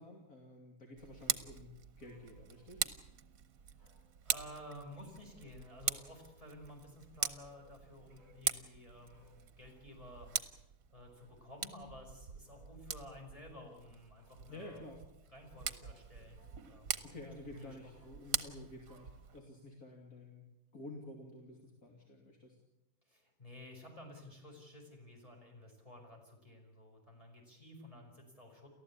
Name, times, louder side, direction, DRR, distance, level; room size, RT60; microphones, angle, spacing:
voice 1, 0.0-1.7 2.0-2.8 14.5-15.0 17.0-20.4 20.7-22.6, left 1 dB, 70° left, 0 dB, 3.3 m, -51 dB
Tick, 1.0-19.4, right 8 dB, 65° right, 1.4 m, -43 dB
sound 1, 2.0-2.8 3.8-4.8 5.3-6.3 7.4-7.6 8.1-8.4 9.1-9.4 9.6-9.9 10.2-10.5 11.1-11.3 11.6-11.9 12.4-12.7 13.3-13.6 14.1-14.4 14.7-15.0 15.4-16.0 16.3-16.6 17.0-17.2 17.5-19.7, left 1 dB, 25° right, 8.0 m, -69 dB
voice 2, 3.9-10.3 10.9-14.8 15.3-16.4 16.7-17.2 17.6-18.0 23.0-28.7, left 1 dB, 20° left, 0 dB, 5.3 m, -53 dB
30.0 x 14.0 x 8.5 m, 0.94 s
omnidirectional pair, 1.6 m